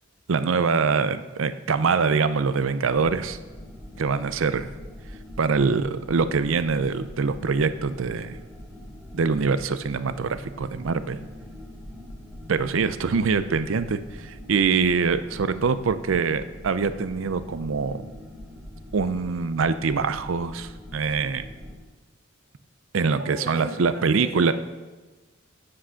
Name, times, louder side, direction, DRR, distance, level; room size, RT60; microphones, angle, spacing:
voice 1, 0.3-3.4 4.0-4.7 5.4-8.4 9.1-11.2 12.5-18.0 18.9-21.4 22.9-24.5, right 5 dB, 75° right, 13 dB, 0.5 m, -24 dB
sound 1, 2.8-21.7, left 1 dB, 10° right, 2.8 m, -43 dB
voice 2, 23.1-24.5, right 1 dB, 50° right, 0 dB, 2.0 m, -37 dB
8.6 x 7.6 x 5.7 m, 1.2 s
head